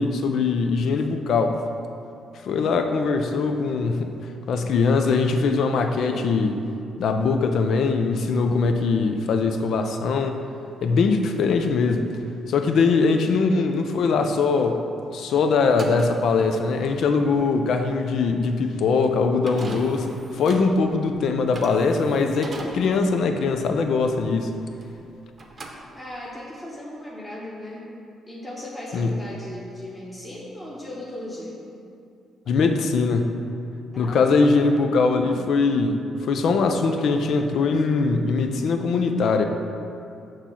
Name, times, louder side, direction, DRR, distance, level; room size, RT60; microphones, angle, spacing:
voice 1, 0.0-1.6 2.4-4.2 4.5-6.6 7.0-10.4 10.8-12.1 12.5-14.8 15.1-24.5 28.9-29.1 32.5-33.4 34.0-36.0 36.3-39.4, left 4 dB, 70° left, 6 dB, 0.5 m, -21 dB
sound 1, 15.6-25.1 25.3-26.4, right 2 dB, 40° right, 0.7 m, -41 dB
voice 2, 25.9-27.9 28.3-31.6 33.9-35.0, left 1 dB, 10° left, -6 dB, 1.1 m, -37 dB
6.7 x 3.1 x 5.6 m, 2.6 s
cardioid pair, 90°, 0 cm